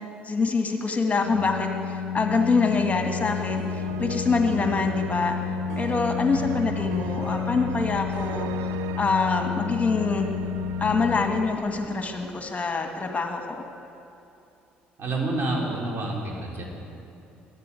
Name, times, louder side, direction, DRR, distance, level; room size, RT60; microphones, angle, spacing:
voice 1, 0.2-10.3 10.8-13.6, left 4 dB, 25° left, 3 dB, 1.7 m, -25 dB
Organ, 1.1-11.9, left 8 dB, 85° left, 0.4 m, -31 dB
sound 1, 3.3-13.3, right 12 dB, 70° right, 0.5 m, -39 dB
voice 2, 15.0-16.6, right 2 dB, 45° right, -2 dB, 3.9 m, -28 dB
13.5 x 11.0 x 9.1 m, 2.7 s
hypercardioid pair, 55°, 5 cm